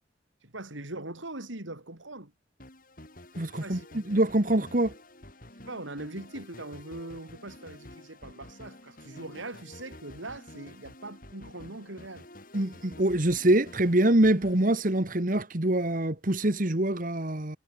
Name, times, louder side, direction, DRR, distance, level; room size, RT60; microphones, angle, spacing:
voice 1, 0.4-2.3 3.6-4.0 5.7-12.3, right 2 dB, 85° right, 4.3 m, -41 dB
sound 1, 2.6-15.5, left 1 dB, 45° left, 4.1 m, -49 dB
voice 2, 3.4-4.9 12.5-17.6, right 1 dB, 45° right, 1.7 m, -25 dB
head